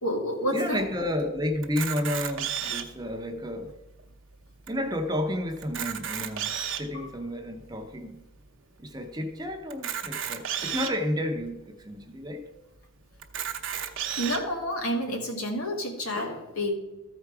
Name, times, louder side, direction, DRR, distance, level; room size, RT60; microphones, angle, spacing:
voice 1, 0.0-0.9 6.9-7.1 14.2-16.8, equal, 75° left, 1 dB, 1.9 m, -29 dB
voice 2, 0.5-3.8 4.7-8.3 8.8-12.5, left 1 dB, 20° right, 5 dB, 0.7 m, -31 dB
Camera, 1.6-3.0 3.7-3.8 4.0-4.1 4.7-4.8 5.6-6.9 7.6-7.7 9.7-10.9 11.7-11.8 12.0-12.1 13.2-14.4, right 9 dB, 55° right, 0.8 m, -32 dB
14.0 x 4.7 x 4.7 m, 1.1 s
head